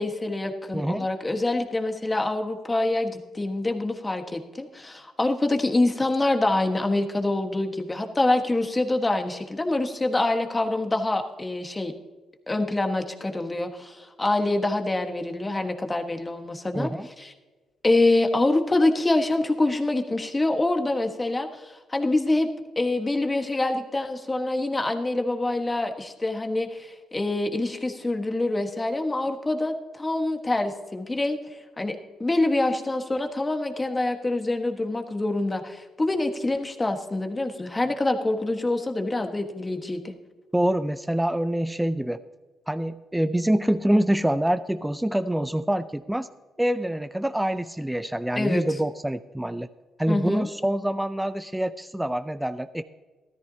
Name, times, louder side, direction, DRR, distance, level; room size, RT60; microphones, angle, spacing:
voice 1, 0.0-11.9 12.5-16.9 17.2-17.3 17.8-22.5 22.8-31.4 31.8-40.1 48.3-48.6 50.1-50.5, left 2 dB, 20° left, 5 dB, 1.4 m, -25 dB
voice 2, 0.7-1.1 16.7-17.1 40.5-42.2 42.7-46.3 46.6-49.7 50.0-52.8, right 1 dB, 5° right, 11 dB, 0.4 m, -25 dB
14.0 x 13.0 x 2.8 m, 1.2 s
cardioid pair, 90°, 0 cm